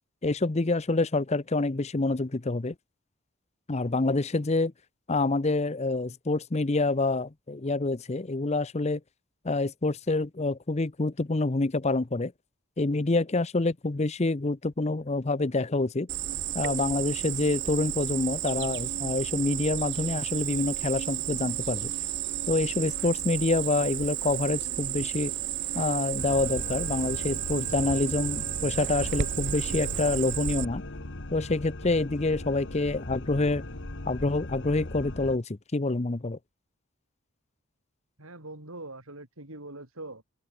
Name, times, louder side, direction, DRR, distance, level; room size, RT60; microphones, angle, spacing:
voice 1, 0.2-2.7 3.7-4.7 5.1-9.0 9.4-12.3 12.8-16.1 16.5-21.9 22.5-25.3 25.7-30.8 31.3-33.6 34.1-36.4, left 2 dB, 30° left, 0.7 m, -27 dB
Cricket, 16.1-30.6, right 11 dB, 55° right, 0.6 m, -32 dB
sound 1, 26.2-35.4, left 1 dB, 60° left, 1.8 m, -39 dB
voice 2, 38.2-40.2, right 2 dB, 75° right, 7.1 m, -42 dB
head